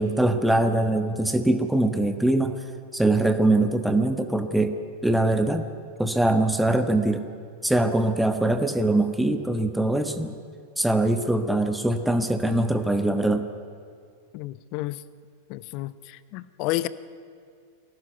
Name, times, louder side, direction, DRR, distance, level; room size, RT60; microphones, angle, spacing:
voice 1, 0.0-2.6 2.9-4.7 5.0-5.7 6.0-7.2 7.6-10.4 10.8-13.4, right 2 dB, 5° right, 8 dB, 1.4 m, -22 dB
voice 2, 14.3-15.0 15.5-16.9, left 17 dB, 45° left, 17 dB, 0.7 m, -31 dB
22.0 x 17.5 x 9.4 m, 2.3 s
figure-of-eight pair, 90°, 0 cm